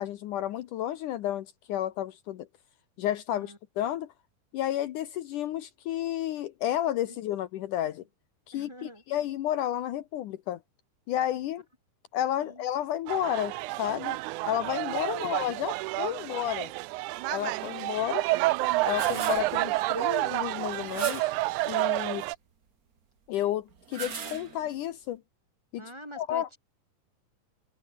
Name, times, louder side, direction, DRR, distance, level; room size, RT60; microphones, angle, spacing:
voice 1, 0.0-2.5 3.0-4.1 4.5-8.0 8.5-10.6 11.1-11.6 12.1-14.2 14.5-16.7 17.3-18.3 18.9-21.3 21.7-22.3 23.3-25.2 25.7-25.8 26.2-26.5, left 12 dB, 75° left, 2.4 m, -31 dB
voice 2, 8.5-9.0 12.4-12.7 15.0-15.4 25.7-26.6, equal, 5° right, 5.0 m, -46 dB
sound 1, 13.1-22.3, right 20 dB, 80° right, 1.8 m, -30 dB
sound 2, 18.6-19.6 20.8-21.5 23.7-24.8, right 6 dB, 45° right, 1.2 m, -37 dB
omnidirectional pair, 3.9 m